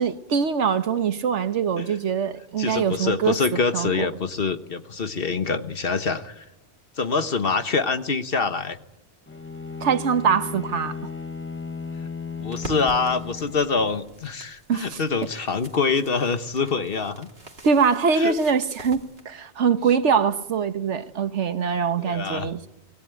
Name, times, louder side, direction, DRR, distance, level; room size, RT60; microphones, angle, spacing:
voice 1, 0.0-3.3 3.7-4.1 9.8-11.0 14.7-15.0 17.6-22.7, right 6 dB, 90° right, 1.4 m, -23 dB
voice 2, 2.6-6.4 7.0-8.8 12.0-12.1 12.4-17.3 18.1-18.4 22.0-22.5, left 4 dB, 55° left, 1.4 m, -25 dB
Bowed string instrument, 9.3-14.1, left 5 dB, 15° left, 0.8 m, -35 dB
sound 1, 12.5-19.2, right 2 dB, 60° right, 2.9 m, -44 dB
25.0 x 20.0 x 9.1 m
omnidirectional pair, 1.2 m